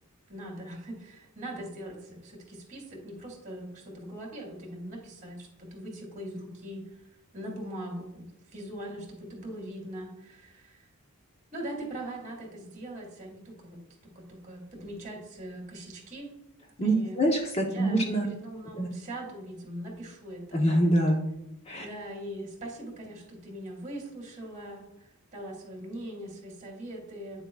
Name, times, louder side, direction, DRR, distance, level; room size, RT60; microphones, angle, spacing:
voice 1, 0.3-7.0 7.3-10.9 11.5-16.3 16.8-17.2 17.6-20.6 21.8-27.4, right 1 dB, 35° right, -1 dB, 3.0 m, -41 dB
voice 2, 16.8-18.3 18.7-18.9 20.5-21.3 21.7-21.9, right 1 dB, 30° left, 1 dB, 0.9 m, -25 dB
10.0 x 7.0 x 2.4 m, 0.85 s
head